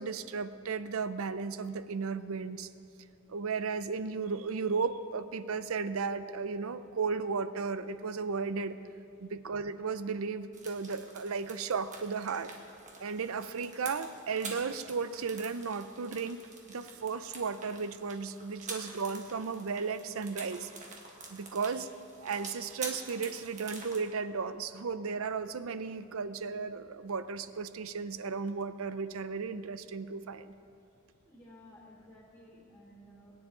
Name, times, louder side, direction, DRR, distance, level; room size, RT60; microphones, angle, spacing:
voice 1, 0.0-2.7 3.3-8.8 9.2-12.5 13.0-16.4 16.7-20.7 21.3-21.9 22.2-30.5, right 5 dB, 75° right, 13 dB, 0.5 m, -35 dB
sound 1, 10.5-24.0, right 3 dB, 35° right, 1.6 m, -47 dB
voice 2, 31.2-33.5, equal, 15° left, -8 dB, 3.4 m, -55 dB
21.5 x 9.8 x 3.8 m, 2.8 s
head